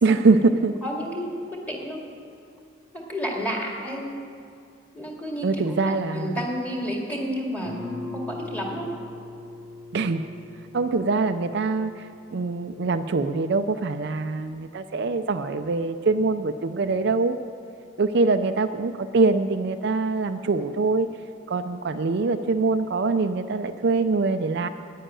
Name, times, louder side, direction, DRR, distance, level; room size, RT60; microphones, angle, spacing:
voice 1, 0.0-0.8 5.4-6.4 9.9-10.2 10.7-12.1 12.3-17.4 18.0-21.1 21.5-24.7, right 3 dB, 55° right, 8 dB, 0.4 m, -23 dB
voice 2, 0.8-2.0 2.9-4.1 4.9-8.9, equal, 10° left, -1 dB, 2.0 m, -31 dB
Guitar, 7.6-13.0, left 3 dB, 90° left, 3.4 m, -41 dB
10.0 x 10.0 x 9.0 m, 2.4 s
head